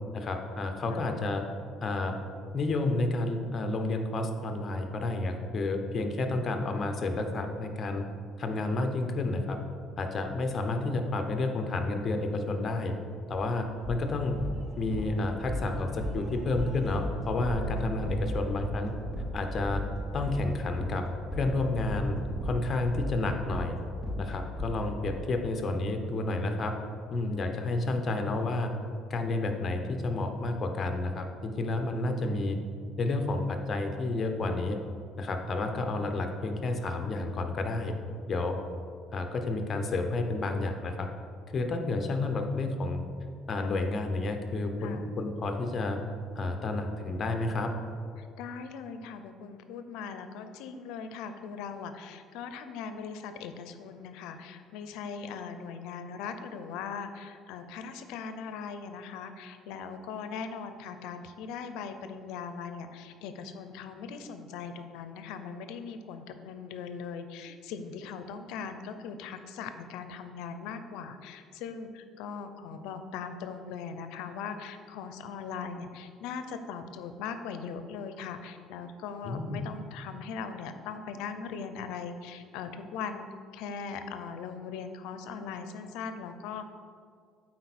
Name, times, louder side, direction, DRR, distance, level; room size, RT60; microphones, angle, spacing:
voice 1, 0.1-1.4 1.8-2.1 2.5-8.0 8.4-9.6 10.0-12.9 13.3-14.4 14.8-18.9 19.3-19.8 20.1-22.2 22.4-23.8 24.2-26.7 27.1-28.7 29.1-32.6 33.0-34.8 35.2-37.9 38.3-38.6 39.1-41.1 41.5-43.0 43.5-46.0 46.4-47.7 79.2-79.6, left 2 dB, 35° left, 5 dB, 0.8 m, -30 dB
sound 1, 13.8-25.2, equal, 10° right, 1.0 m, -35 dB
voice 2, 48.2-83.3 83.5-86.6, left 6 dB, 85° left, 9 dB, 0.5 m, -40 dB
8.7 x 4.3 x 4.2 m, 2.2 s
cardioid pair, 115°, 0 cm